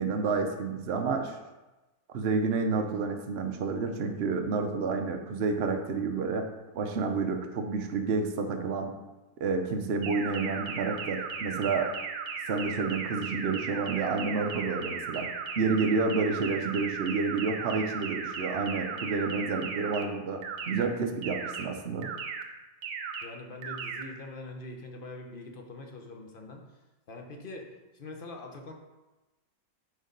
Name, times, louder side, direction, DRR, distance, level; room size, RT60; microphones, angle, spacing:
voice 1, 0.0-1.4 2.1-6.5 6.7-8.9 9.4-11.9 12.5-15.3 15.6-22.1, right 4 dB, 60° right, 4 dB, 0.7 m, -29 dB
sound 1, 10.0-20.0 20.4-20.8 21.2-21.6 22.0-22.4 22.8-23.2 23.6-24.0, right 6 dB, 90° right, 1.5 m, -36 dB
voice 2, 23.2-26.8 27.1-28.7, left 2 dB, 45° left, 2 dB, 0.7 m, -43 dB
6.4 x 4.5 x 5.2 m, 1.1 s
omnidirectional pair, 1.9 m